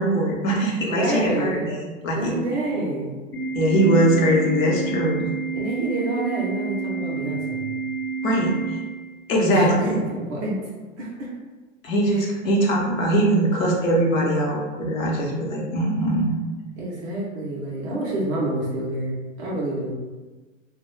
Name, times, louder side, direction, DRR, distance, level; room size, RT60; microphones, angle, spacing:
voice 1, 0.0-2.3 3.5-5.3 8.2-8.5 9.3-10.0 11.8-16.3, right 1 dB, 80° left, -2 dB, 0.8 m, -21 dB
voice 2, 0.5-1.7 2.1-3.2 5.5-7.7 9.5-10.6 11.0-11.3 12.1-12.2 16.8-19.9, right 2 dB, 25° right, -4 dB, 0.4 m, -28 dB
Organ, 3.3-9.3, right 5 dB, 55° left, 0.9 m, -29 dB
2.2 x 2.0 x 3.0 m, 1.3 s
hypercardioid pair, 115°, 39 cm